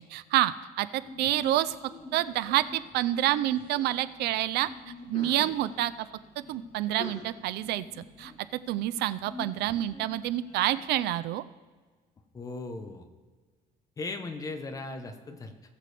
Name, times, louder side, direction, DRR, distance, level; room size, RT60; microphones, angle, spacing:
voice 1, 0.0-1.7 2.1-4.7 5.1-6.1 6.5-7.8 8.2-8.3 8.7-11.4, right 14 dB, 80° right, 15 dB, 0.5 m, -28 dB
Sneeze, 1.0-11.0, left 3 dB, 50° left, 2.1 m, -47 dB
voice 2, 12.3-13.1 14.0-15.5, left 3 dB, 20° left, 6 dB, 0.8 m, -37 dB
18.5 x 6.7 x 3.4 m, 1.4 s
cardioid pair, 180°, 17 cm